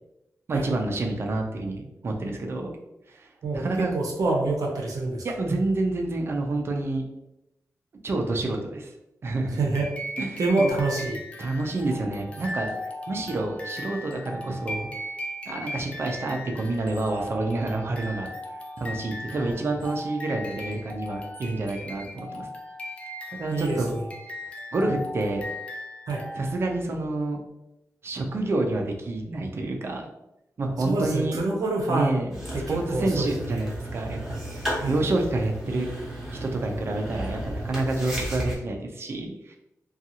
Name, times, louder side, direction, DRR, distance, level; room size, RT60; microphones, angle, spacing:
voice 1, 0.5-2.7 3.1-3.3 3.5-4.0 5.2-7.0 8.0-8.9 9.2-9.6 10.2-10.7 11.4-12.7 13.1-14.9 15.5-18.3 18.8-22.5 23.3-24.0 24.7-25.5 26.4-27.4 28.0-30.0 30.6-31.4 31.9-32.3 32.7-34.4 34.9-35.9 36.3-39.6, right 2 dB, 45° right, 2 dB, 0.4 m, -28 dB
voice 2, 3.4-5.2 9.5-9.9 10.4-11.2 19.4-19.6 23.5-24.0 26.1-26.2 30.8-32.1 32.5-33.6 34.8-34.9, right 2 dB, 85° right, 0 dB, 0.6 m, -26 dB
sound 1, 9.7-26.8, left 1 dB, 20° left, 0.4 m, -38 dB
sound 2, 32.3-38.6, right 1 dB, 5° right, 0.8 m, -34 dB
2.5 x 2.3 x 2.7 m, 0.88 s
wide cardioid pair, 165°, 6 cm